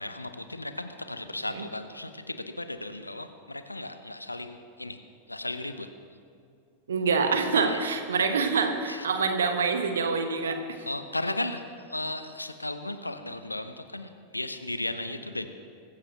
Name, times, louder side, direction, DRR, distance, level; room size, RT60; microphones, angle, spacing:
voice 1, 0.0-5.0 5.3-5.9 7.6-7.8 8.9-9.1 10.9-11.6 11.9-15.5, left 2 dB, 85° left, 9 dB, 0.8 m, -35 dB
voice 2, 6.9-10.6, right 5 dB, 65° right, 6 dB, 1.2 m, -26 dB
23.5 x 14.5 x 3.0 m, 2.4 s
figure-of-eight pair, 90°, 0 cm